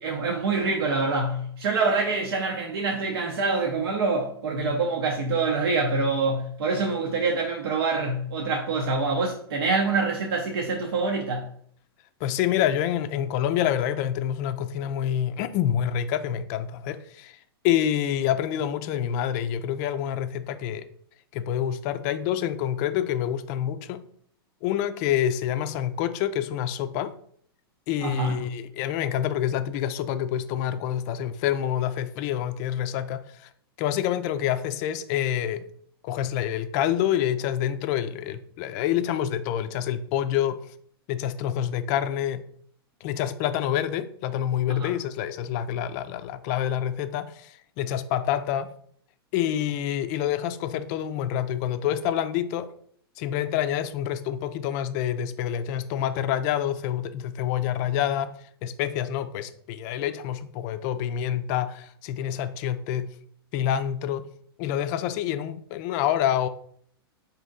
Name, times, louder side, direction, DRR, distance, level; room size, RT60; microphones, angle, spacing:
voice 1, 0.0-11.4 28.0-28.4 44.7-44.9, right 3 dB, 70° right, 0.7 m, -25 dB
voice 2, 12.2-20.9 21.3-24.0 24.6-27.1 27.9-33.5 33.8-35.7 36.0-40.7 41.1-42.4 43.0-48.7 49.3-52.7 53.2-58.3 58.6-63.1 63.5-64.3 64.6-66.5, left 10 dB, 45° left, 0.4 m, -27 dB
4.2 x 2.8 x 3.7 m
hypercardioid pair, 115°, 13 cm